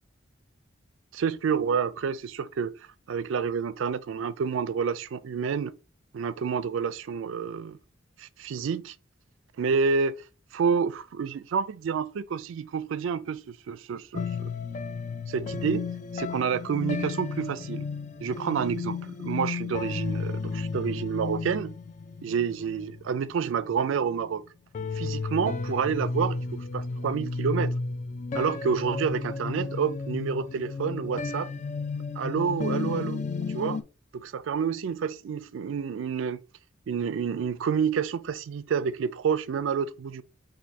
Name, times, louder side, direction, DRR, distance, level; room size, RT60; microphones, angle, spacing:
voice 1, 1.1-2.8 3.1-5.7 6.1-7.8 8.2-9.0 9.6-10.2 10.5-14.5 15.3-15.9 16.1-17.8 18.2-21.7 22.2-24.4 24.9-27.7 28.3-31.5 32.2-33.2 33.5-33.8 34.1-36.4 36.9-40.2, right 6 dB, 70° right, 0.3 m, -29 dB
sound 1, 14.1-24.4 24.7-33.8, left 4 dB, 35° left, 0.3 m, -33 dB
4.2 x 2.6 x 4.5 m
head